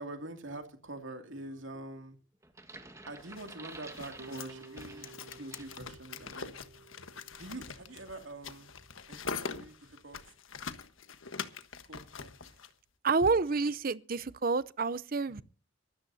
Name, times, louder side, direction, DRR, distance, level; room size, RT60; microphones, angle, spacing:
voice 1, 0.0-2.2 3.1-5.1 5.4-6.6 7.3-8.7 9.1-10.2 11.8-12.5 13.2-13.3 15.3-15.4, right 2 dB, 65° right, 2.5 m, -45 dB
sound 1, 2.4-5.9 6.3-6.5, right 2 dB, 15° right, 1.7 m, -51 dB
sound 2, 3.3-12.7, left 5 dB, 70° left, 1.3 m, -43 dB
sound 3, 4.2-9.3, right 3 dB, 85° right, 1.1 m, -54 dB
voice 2, 13.0-15.4, right 4 dB, 45° right, 0.6 m, -29 dB
24.5 x 13.0 x 2.7 m
head